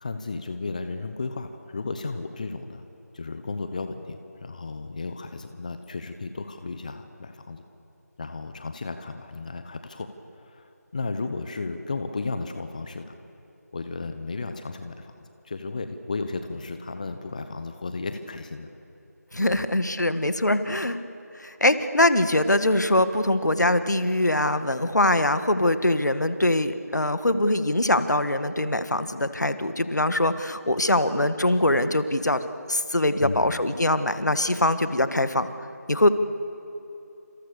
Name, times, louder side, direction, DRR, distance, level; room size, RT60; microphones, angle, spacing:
voice 1, 0.0-2.8 3.1-7.6 8.2-10.1 10.9-13.2 13.7-14.9 15.5-18.7 19.5-19.6 33.2-33.6, left 3 dB, 25° left, 8 dB, 1.0 m, -34 dB
voice 2, 19.3-21.0 21.4-32.4 32.7-35.5 35.9-36.1, left 1 dB, 75° left, 11 dB, 1.7 m, -23 dB
29.5 x 27.5 x 6.8 m, 2.8 s
figure-of-eight pair, 170°, 9 cm